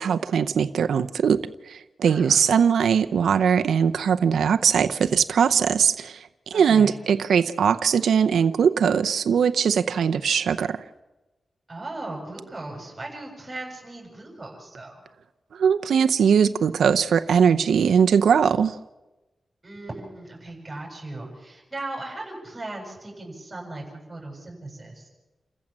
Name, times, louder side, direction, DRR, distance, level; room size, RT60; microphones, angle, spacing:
voice 1, 0.0-1.4 1.7-6.3 6.5-10.8 15.5-18.8, right 7 dB, 90° right, 8 dB, 0.7 m, -20 dB
voice 2, 2.0-2.4 6.5-7.0 11.7-15.0 19.6-25.1, right 2 dB, 25° right, -1 dB, 7.8 m, -37 dB
28.5 x 15.0 x 7.5 m, 1.1 s
cardioid pair, 70°, 0 cm